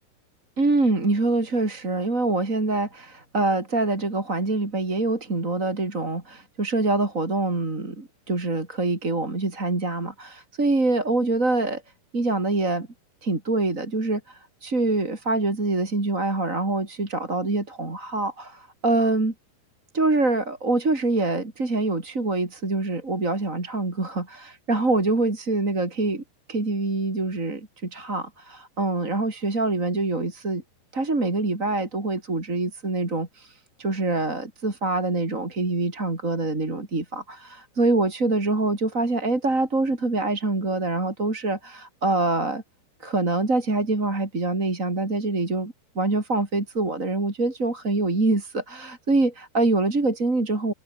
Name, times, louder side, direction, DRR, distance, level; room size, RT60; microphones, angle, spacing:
voice 1, 0.6-11.8 12.1-12.9 13.2-19.3 19.9-26.2 26.5-30.6 30.9-42.6 43.0-50.7, right 2 dB, 20° right, 3.8 m, -25 dB
omnidirectional pair, 5.3 m